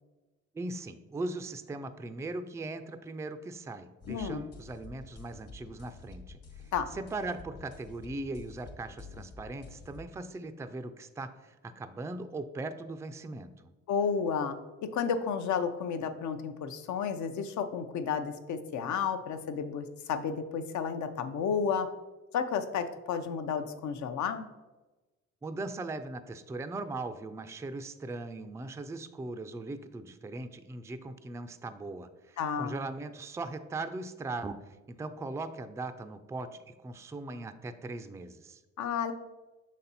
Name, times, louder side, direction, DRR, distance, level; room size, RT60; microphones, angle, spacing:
voice 1, 0.5-13.7 25.4-38.6, right 2 dB, 10° right, 9 dB, 0.3 m, -39 dB
sound 1, 4.0-10.0, left 4 dB, 55° left, 1.0 m, -49 dB
voice 2, 4.1-4.5 6.7-6.9 13.9-14.6 14.9-21.9 22.3-24.4 32.4-32.7 38.8-39.1, left 6 dB, 70° left, 8 dB, 0.7 m, -32 dB
6.1 x 4.2 x 4.1 m, 1.1 s
cardioid pair, 90°, 30 cm